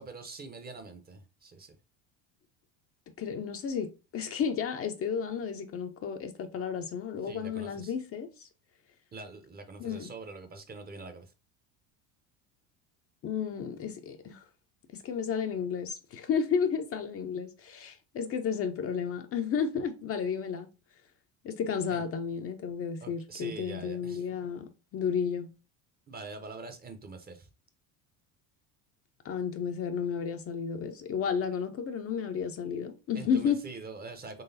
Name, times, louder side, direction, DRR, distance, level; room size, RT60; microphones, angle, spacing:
voice 1, 0.0-1.8 7.2-7.9 9.1-11.3 21.9-22.0 23.0-24.3 26.1-27.5 33.1-34.4, right 3 dB, 25° right, 0.6 m, -44 dB
voice 2, 3.2-8.5 9.8-10.1 13.2-14.4 14.9-20.7 21.4-25.5 29.2-33.6, left 7 dB, 35° left, 0.5 m, -32 dB
3.9 x 3.1 x 2.7 m
supercardioid pair, 95°, 40 cm